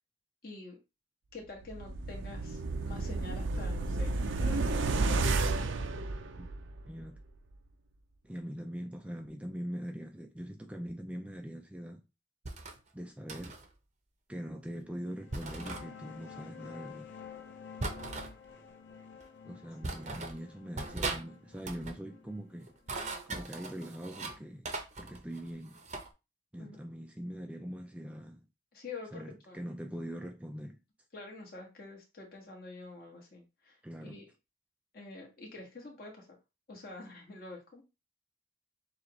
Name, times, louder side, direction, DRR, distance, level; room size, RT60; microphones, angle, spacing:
voice 1, 0.4-0.8 1.3-5.0 19.9-20.1 26.6-26.8 28.7-29.7 31.1-34.3 34.9-36.4 36.7-37.8, left 3 dB, 50° left, 1.6 m, -47 dB
sound 1, 1.6-6.8 7.2-7.3, right 3 dB, 75° right, 0.5 m, -31 dB
voice 2, 6.9-7.2 8.2-12.0 12.9-13.6 14.3-17.1 19.5-22.7 23.3-24.7 25.0-25.8 26.5-28.5 29.1-30.8 33.8-34.2, equal, 5° right, 0.3 m, -42 dB
sound 2, 12.4-12.8 13.3-13.7 15.3-15.8 17.8-18.3 19.2-19.3 19.8-20.4 20.8-21.2 21.5-22.0 22.7-24.4 24.6-26.1, right 3 dB, 35° right, 0.7 m, -39 dB
sound 3, 15.1-24.4, left 7 dB, 70° left, 0.8 m, -51 dB
6.9 x 2.4 x 3.1 m
head